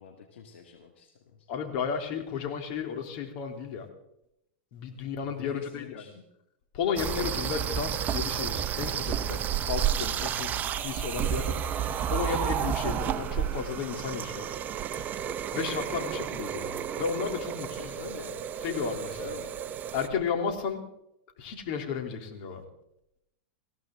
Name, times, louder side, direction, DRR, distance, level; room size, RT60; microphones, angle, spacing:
voice 1, 0.0-1.5 5.2-6.2 9.0-9.1 10.4-10.6 17.8-18.5 19.0-19.6, left 6 dB, 80° left, 4 dB, 2.2 m, -47 dB
voice 2, 1.5-3.9 4.7-6.1 6.7-9.4 9.7-10.5 10.8-14.5 15.5-17.9 18.6-19.4 19.9-20.8 21.4-22.6, left 6 dB, 55° left, 4 dB, 3.3 m, -33 dB
sound 1, 7.0-20.1, right 9 dB, 30° right, 0.9 m, -31 dB
20.0 x 16.0 x 3.8 m, 0.79 s
hypercardioid pair, 125°, 6 cm